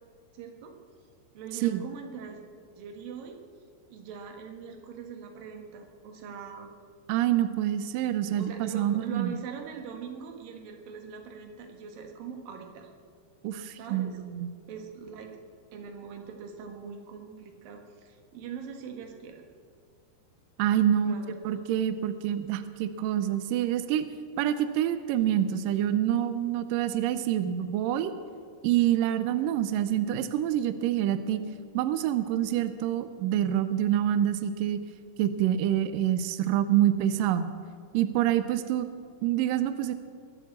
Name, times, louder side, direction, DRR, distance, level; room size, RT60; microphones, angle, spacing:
voice 1, 0.3-0.7 1.3-2.4 2.8-3.4 3.9-6.7 8.4-12.9 13.7-14.2 14.7-15.3 15.7-19.5 21.0-21.6, right 6 dB, 65° right, 3 dB, 3.1 m, -42 dB
voice 2, 7.1-9.3 13.4-14.5 20.6-21.2 21.4-24.1 24.4-28.1 28.6-31.4 31.7-34.8 35.2-37.5 37.9-38.9 39.2-39.9, right 11 dB, 80° right, 11 dB, 2.0 m, -26 dB
22.5 x 8.3 x 7.4 m, 2.1 s
omnidirectional pair, 4.6 m